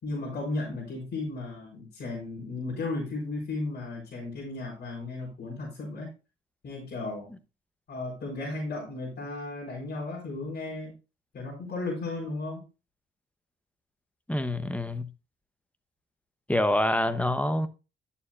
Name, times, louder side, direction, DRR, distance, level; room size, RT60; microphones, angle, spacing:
voice 1, 0.0-6.1 6.6-7.3 7.9-10.9 11.3-12.6, left 2 dB, 55° left, 4.2 m, -35 dB
voice 2, 14.3-15.1 16.5-17.7, left 1 dB, 5° left, 0.9 m, -26 dB
11.0 x 7.1 x 2.5 m
cardioid pair, 90°, 20 cm